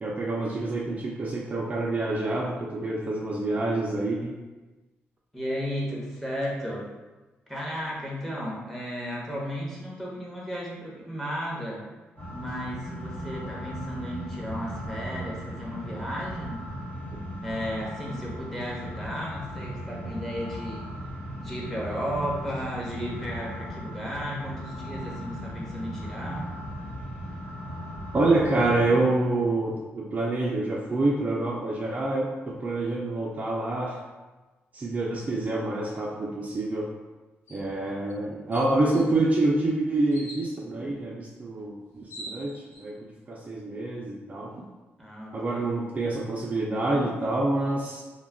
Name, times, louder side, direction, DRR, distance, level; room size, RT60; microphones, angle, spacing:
voice 1, 0.0-4.3 28.1-32.3 32.6-34.0 34.7-36.9 37.5-44.6 45.3-48.0, right 2 dB, 35° right, -3 dB, 0.3 m, -27 dB
voice 2, 5.3-6.8 7.5-11.8 12.3-16.6 17.4-20.9 21.4-26.5 45.0-45.7, equal, 5° left, -5 dB, 0.8 m, -34 dB
sound 1, 12.2-28.8, equal, 55° left, 1.3 m, -37 dB
sound 2, 37.5-37.7 38.1-38.2 38.5-39.0 40.1-40.4 41.6-41.7 41.9-42.8, equal, 85° left, 0.7 m, -42 dB
2.2 x 2.1 x 3.4 m, 1.2 s
cardioid pair, 90°, 4 cm